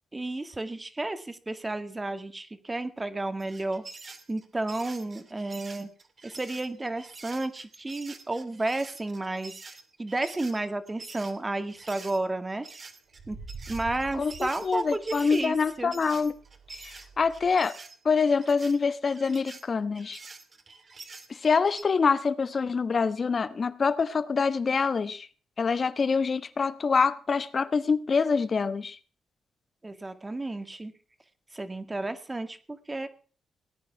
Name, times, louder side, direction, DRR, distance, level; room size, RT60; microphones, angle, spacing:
voice 1, 0.1-3.8 4.3-5.9 6.2-9.5 10.0-12.7 13.3-13.4 13.7-16.0 29.8-30.9 31.5-33.1, right 2 dB, 25° right, 1.9 m, -32 dB
sound 1, 3.4-12.2 12.6-21.8, right 4 dB, 45° right, 2.6 m, -47 dB
sound 2, 11.6-12.0 13.1-17.5, right 4 dB, 75° right, 3.8 m, -47 dB
voice 2, 14.1-16.3 16.8-17.8 18.0-20.2 21.3-25.3 25.6-29.0, left 5 dB, 50° left, 1.3 m, -25 dB
19.0 x 9.4 x 5.9 m
cardioid pair, 65°, 0 cm